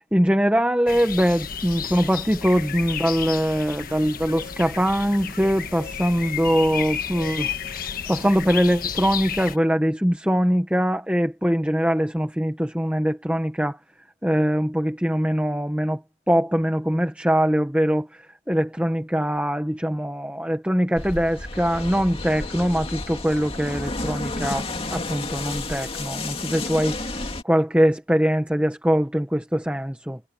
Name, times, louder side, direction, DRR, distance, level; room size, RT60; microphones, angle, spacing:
voice 1, 0.1-13.8 14.2-16.0 16.3-30.2, equal, 5° right, 1.6 m, -22 dB
sound 1, 0.9-9.6, left 7 dB, 45° left, 1.5 m, -32 dB
sound 2, 20.9-27.4, left 2 dB, 30° left, 2.6 m, -31 dB
head